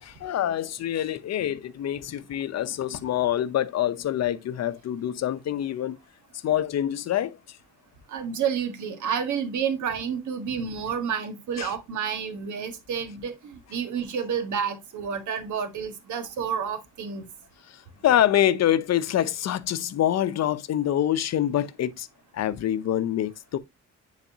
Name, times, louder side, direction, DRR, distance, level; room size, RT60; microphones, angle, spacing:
voice 1, 0.0-6.0 6.4-7.6 11.6-11.7 17.7-22.1 22.3-23.6, left 11 dB, 60° left, 0.7 m, -26 dB
voice 2, 8.1-17.2, right 7 dB, 75° right, 1.6 m, -30 dB
9.7 x 4.1 x 2.8 m
cardioid pair, 90°, 30 cm